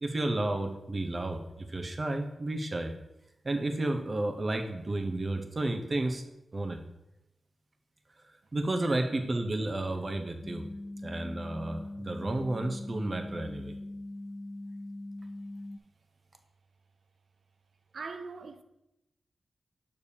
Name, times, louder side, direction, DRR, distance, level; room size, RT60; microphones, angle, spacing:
voice 1, 0.0-2.9 3.4-6.2 6.5-6.8 8.5-10.7 11.0-13.7, right 2 dB, 45° right, 0.8 m, -32 dB
sound 1, 10.4-15.8, left 1 dB, 45° left, 0.4 m, -41 dB
voice 2, 17.9-18.6, right 4 dB, 70° right, 0.5 m, -41 dB
6.8 x 6.6 x 2.8 m
cardioid pair, 55°, 0 cm